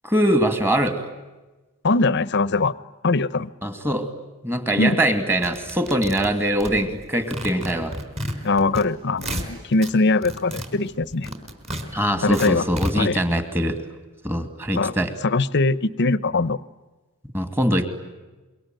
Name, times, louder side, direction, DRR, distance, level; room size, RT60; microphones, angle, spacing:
voice 1, 0.0-1.0 3.6-4.1 4.4-8.0 11.9-13.8 14.2-15.1 17.3-17.9, equal, 10° right, 8 dB, 2.5 m, -22 dB
voice 2, 1.8-2.7 3.0-3.5 4.8-5.0 8.4-11.3 12.2-12.7 12.9-13.2 14.7-14.9 15.2-16.6, left 3 dB, 55° left, 18 dB, 0.8 m, -21 dB
sound 1, 5.4-7.1 7.3-8.8 9.1-9.9 10.2-12.9, equal, 30° right, 4.6 m, -31 dB
27.0 x 23.5 x 9.2 m, 1.2 s
head